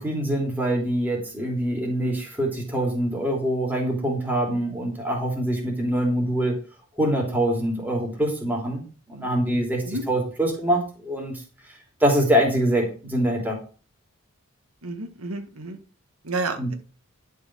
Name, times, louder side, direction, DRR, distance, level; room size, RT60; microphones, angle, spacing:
voice 1, 0.0-6.5 7.0-11.4 12.0-13.6 16.6-16.7, right 1 dB, 10° right, -1 dB, 3.2 m, -24 dB
voice 2, 14.8-15.8 16.2-16.7, right 3 dB, 90° right, 6 dB, 1.7 m, -30 dB
11.5 x 5.5 x 6.2 m, 0.37 s
head